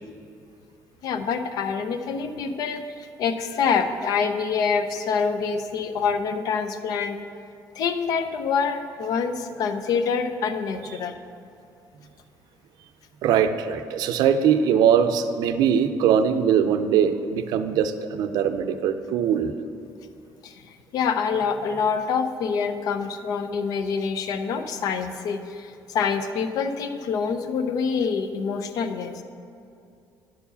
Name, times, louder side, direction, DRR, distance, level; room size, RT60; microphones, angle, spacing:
voice 1, 1.0-7.2 7.7-11.2 20.4-29.2, left 5 dB, 65° left, 8 dB, 0.6 m, -26 dB
voice 2, 13.2-19.5, right 8 dB, 75° right, 9 dB, 0.5 m, -21 dB
10.5 x 4.7 x 6.9 m, 2.6 s
cardioid pair, 165°, 7 cm